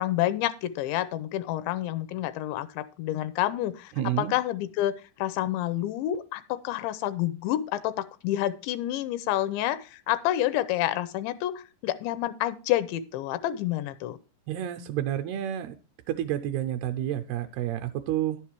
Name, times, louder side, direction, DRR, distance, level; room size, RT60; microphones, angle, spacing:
voice 1, 0.0-3.9 4.2-14.2, left 13 dB, 90° left, 13 dB, 3.1 m, -29 dB
voice 2, 4.0-4.3 14.5-15.8 16.1-18.4, right 11 dB, 80° right, 6 dB, 2.4 m, -30 dB
11.0 x 7.2 x 4.5 m, 0.33 s
omnidirectional pair, 5.0 m